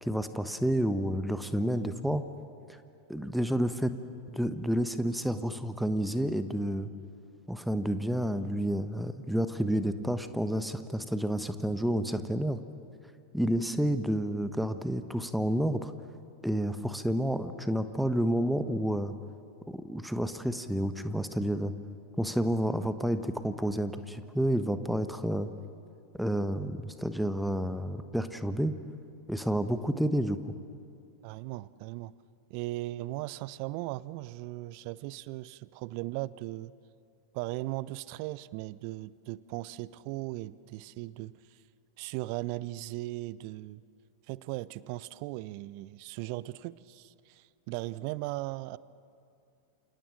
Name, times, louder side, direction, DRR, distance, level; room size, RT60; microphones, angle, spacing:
voice 1, 0.0-2.2 3.1-3.9 4.3-6.9 7.5-12.6 13.3-15.9 16.4-19.1 19.7-21.7 22.2-25.5 26.2-28.8 29.3-30.5, equal, ahead, 10 dB, 1.2 m, -30 dB
voice 2, 31.2-32.1 32.5-36.7 37.3-41.3 42.0-43.8 44.3-48.8, right 18 dB, 45° right, 20 dB, 0.6 m, -38 dB
28.5 x 26.5 x 6.4 m, 2.5 s
figure-of-eight pair, 90°, 0 cm